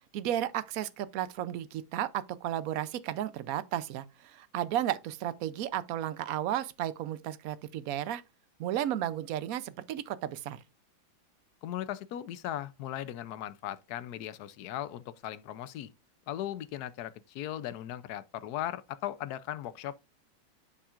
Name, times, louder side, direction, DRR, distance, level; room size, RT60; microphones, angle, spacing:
voice 1, 0.1-8.2 8.6-10.6, right 11 dB, 70° right, 0.9 m, -33 dB
voice 2, 11.6-15.9 16.3-20.0, left 12 dB, 70° left, 1.0 m, -38 dB
11.0 x 5.7 x 2.5 m
omnidirectional pair, 2.1 m